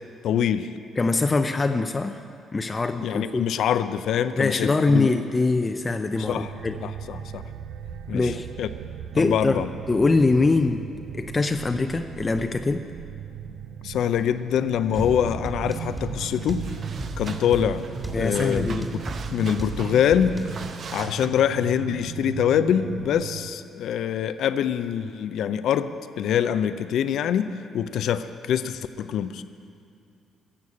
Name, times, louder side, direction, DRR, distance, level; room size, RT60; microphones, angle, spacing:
voice 1, 0.2-0.7 3.0-5.1 6.2-6.5 6.8-7.4 8.1-8.3 8.6-8.7 9.2-9.7 13.8-16.6 17.2-17.8 18.2-19.0 19.3-20.4 20.9-29.4, left 9 dB, 70° left, 12 dB, 0.5 m, -24 dB
voice 2, 1.0-2.2 2.5-3.4 4.4-6.8 8.1-8.5 9.1-10.9 11.1-12.9 18.1-18.9, left 3 dB, 30° left, 7 dB, 0.6 m, -23 dB
sound 1, 6.1-23.5, right 8 dB, 70° right, 0.5 m, -37 dB
sound 2, 14.9-20.7, right 1 dB, 15° right, 2.6 m, -35 dB
sound 3, 15.7-15.8 16.2-21.3, right 5 dB, 55° right, 0.8 m, -41 dB
15.5 x 7.4 x 8.5 m, 2.4 s
hypercardioid pair, 50°, 0 cm